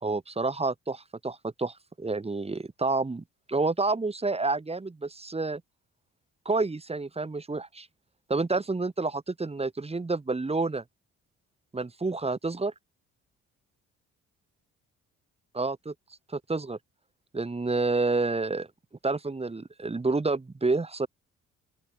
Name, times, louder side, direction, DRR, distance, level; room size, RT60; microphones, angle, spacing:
voice 1, 0.0-5.6 6.5-7.9 8.3-10.8 11.7-12.7 15.5-15.9 16.3-16.8 17.3-18.7 19.0-21.1, right 3 dB, 20° right, 2.5 m, -29 dB
open air
cardioid pair, 90°, 30 cm